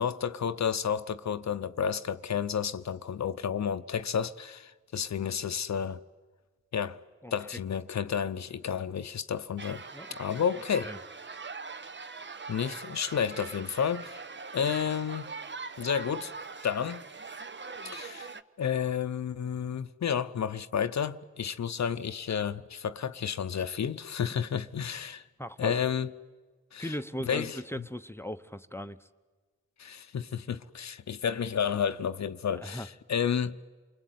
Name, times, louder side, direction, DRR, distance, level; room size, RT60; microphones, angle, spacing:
voice 1, 0.0-6.0 6.7-7.0 7.3-9.8 10.2-10.9 12.5-14.2 14.5-15.3 15.8-16.3 16.6-17.0 17.9-18.3 18.6-25.3 25.6-26.1 26.7-26.9 27.3-27.6 29.8-33.6, left 7 dB, 65° left, 0.8 m, -31 dB
sound 1, 9.6-18.4, right 4 dB, 40° right, 1.0 m, -42 dB
voice 2, 25.4-25.8 26.8-29.1 32.6-32.9, equal, 10° left, 0.9 m, -38 dB
28.5 x 21.0 x 9.4 m
cardioid pair, 50°, 30 cm